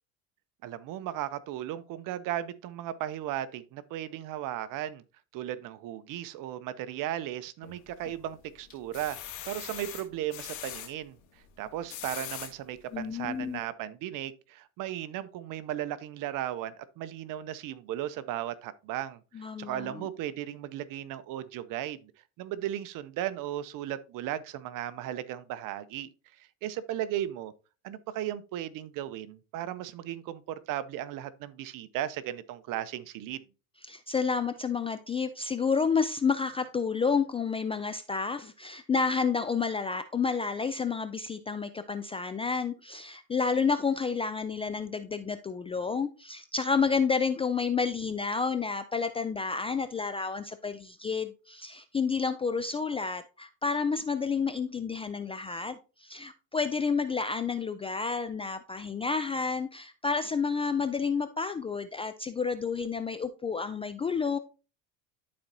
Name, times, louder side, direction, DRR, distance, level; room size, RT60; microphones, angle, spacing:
voice 1, 0.6-5.0 5.3-11.2 11.6-22.1 22.4-27.5 27.8-33.4, right 12 dB, 55° right, 0.9 m, -36 dB
sound 1, 7.6-8.2 8.7-10.9 11.7-12.5 13.1-13.2 13.5-13.6, left 11 dB, 75° left, 2.7 m, -41 dB
voice 2, 12.9-13.6 19.4-20.1 33.9-64.4, left 5 dB, 15° left, 0.3 m, -30 dB
13.0 x 4.3 x 2.7 m
supercardioid pair, 105°, 40 cm